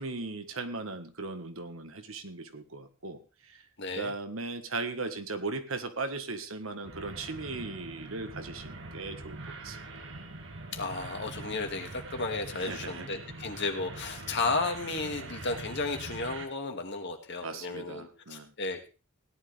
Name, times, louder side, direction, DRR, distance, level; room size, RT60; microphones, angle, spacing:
voice 1, 0.0-3.6 3.9-9.4 9.6-9.8 12.5-13.1 17.4-18.5, right 3 dB, 80° right, 8 dB, 1.5 m, -38 dB
voice 2, 3.8-4.1 10.7-18.9, left 3 dB, 60° left, 4 dB, 2.2 m, -33 dB
sound 1, 6.8-16.4, right 2 dB, 65° right, 1.9 m, -43 dB
17.0 x 11.0 x 3.5 m, 0.33 s
head